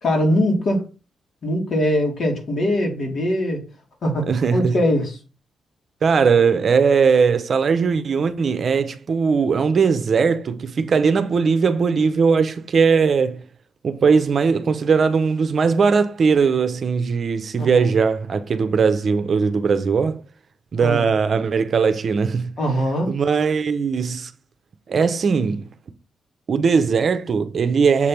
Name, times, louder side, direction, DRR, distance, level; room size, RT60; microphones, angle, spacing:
voice 1, 0.0-0.8 1.4-3.6 4.0-5.2 17.6-17.9 20.8-21.1 22.6-23.1, equal, 55° left, 2.7 m, -21 dB
voice 2, 4.3-4.7 6.0-13.4 13.8-20.2 20.7-22.5 23.1-24.3 24.9-25.6 26.5-28.1, right 5 dB, 50° right, 0.7 m, -19 dB
7.4 x 3.3 x 5.9 m
cardioid pair, 110°, 0 cm